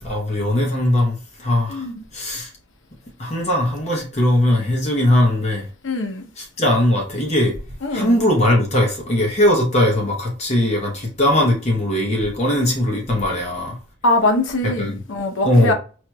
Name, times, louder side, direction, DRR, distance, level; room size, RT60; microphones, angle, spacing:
voice 1, 0.0-1.9 2.1-2.5 3.2-5.6 6.4-7.5 7.9-13.8 14.6-15.0 15.4-15.7, left 1 dB, 35° left, 0.9 m, -19 dB
voice 2, 5.8-6.3 7.8-8.2 14.0-15.7, left 2 dB, 75° left, 0.8 m, -22 dB
4.4 x 2.9 x 2.3 m
head